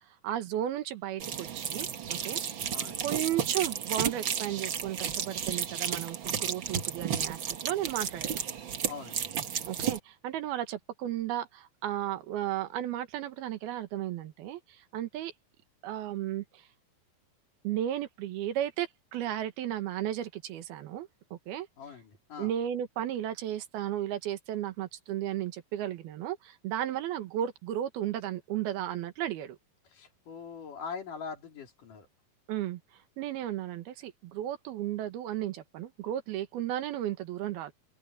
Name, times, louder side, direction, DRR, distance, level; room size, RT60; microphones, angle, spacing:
voice 1, 0.2-2.4 3.0-8.4 9.7-15.3 15.8-16.6 17.6-21.7 22.4-29.6 32.5-32.8 33.2-37.7, right 12 dB, 90° right, 3.3 m, -34 dB
sound 1, 1.2-10.0, right 8 dB, 70° right, 1.1 m, -33 dB
voice 2, 2.7-3.0 8.8-9.3 21.8-22.5 29.9-32.1, left 6 dB, 60° left, 4.9 m, -42 dB
open air
omnidirectional pair, 4.3 m